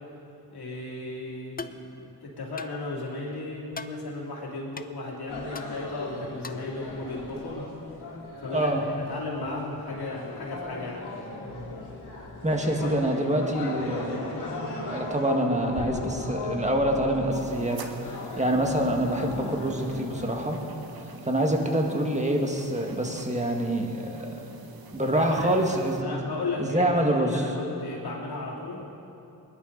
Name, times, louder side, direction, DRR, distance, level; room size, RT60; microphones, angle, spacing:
voice 1, 0.5-1.9 2.2-7.7 8.4-11.1 12.8-12.9 25.1-25.5 26.0-28.9, left 2 dB, 70° left, -3 dB, 3.1 m, -35 dB
sound 1, 1.6-1.8 2.6-2.8 3.7-4.0 4.8-4.9 5.5-5.7 6.4-6.7, left 4 dB, 25° left, 0.5 m, -39 dB
sound 2, 5.3-20.7, left 2 dB, 90° left, 2.3 m, -37 dB
voice 2, 8.5-8.8 12.4-14.2 14.8-17.8 18.4-20.6 21.2-24.3 24.9-26.2 26.6-27.5, right 1 dB, 15° right, 2 dB, 1.8 m, -26 dB
sound 3, 17.3-26.0, right 4 dB, 60° right, 1.2 m, -46 dB
21.0 x 11.0 x 4.1 m, 2.8 s
cardioid pair, 65°, 40 cm